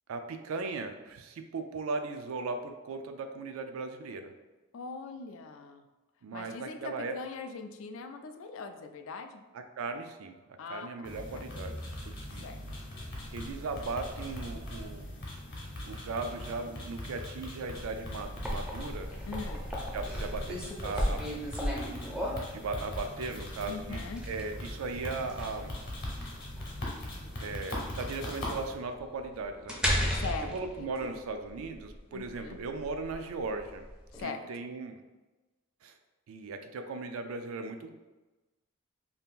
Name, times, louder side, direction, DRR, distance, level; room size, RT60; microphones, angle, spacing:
voice 1, 0.1-4.3 6.2-7.2 9.5-10.4 10.7-11.7 12.0-12.4 13.3-15.1 15.8-19.1 19.9-21.3 22.5-25.7 27.4-30.2 30.5-33.8 34.2-35.0 35.8-35.9 36.3-37.9, right 3 dB, 75° right, 6 dB, 0.3 m, -37 dB
voice 2, 4.7-5.8 6.3-9.4 10.6-11.4 12.3-12.6 19.3-19.6 23.7-24.2 30.1-31.2 32.1-32.6 34.1-34.7, left 4 dB, 65° left, 7 dB, 0.3 m, -41 dB
sound 1, 11.0-28.7, left 1 dB, 50° left, 0.9 m, -41 dB
sound 2, 17.9-34.2, equal, 5° right, 0.4 m, -36 dB
2.7 x 2.4 x 3.5 m, 1.1 s
head